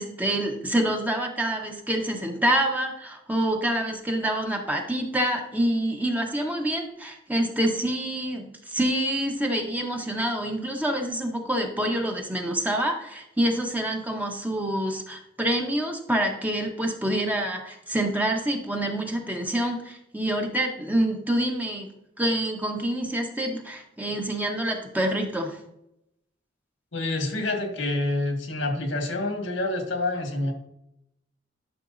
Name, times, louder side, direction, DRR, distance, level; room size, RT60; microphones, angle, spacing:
voice 1, 0.0-21.9 22.2-25.6, right 1 dB, 10° right, 2 dB, 0.9 m, -27 dB
voice 2, 26.9-30.5, left 2 dB, 85° left, 3 dB, 1.7 m, -27 dB
11.0 x 5.9 x 2.6 m, 0.79 s
head